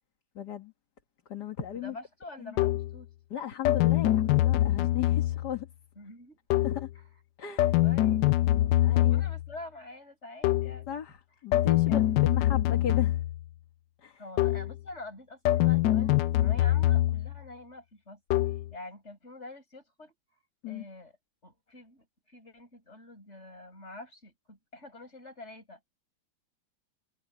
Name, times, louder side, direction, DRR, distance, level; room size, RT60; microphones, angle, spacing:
voice 1, 0.4-0.7 1.3-2.0 2.4-2.5 3.3-5.7 6.6-6.9 7.4-7.8 8.8-9.2 10.9-13.2 14.0-14.2 20.6-20.9, left 9 dB, 55° left, 2.2 m, -36 dB
voice 2, 1.8-3.1 6.0-6.4 6.9-7.0 7.8-10.9 11.9-12.5 14.2-18.2 18.5-20.1 20.7-21.1 21.4-25.8, left 2 dB, 30° left, 8.0 m, -46 dB
sound 1, 2.6-3.0 3.6-5.6 6.5-6.9 7.6-9.5 10.4-10.8 11.5-13.5 14.4-14.8 15.5-17.4 18.3-18.7, left 14 dB, 70° left, 1.1 m, -24 dB
omnidirectional pair, 2.2 m